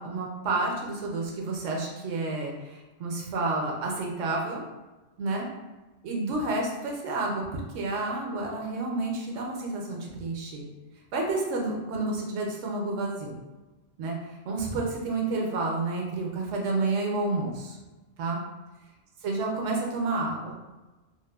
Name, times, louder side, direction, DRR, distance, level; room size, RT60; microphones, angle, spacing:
voice 1, 0.0-4.6 5.2-5.5 6.0-10.6 11.1-13.4 14.0-14.2 14.4-17.8 18.2-18.4 19.2-20.6, right 2 dB, 75° right, -1 dB, 0.9 m, -30 dB
3.1 x 2.1 x 2.2 m, 1.1 s
omnidirectional pair, 1.3 m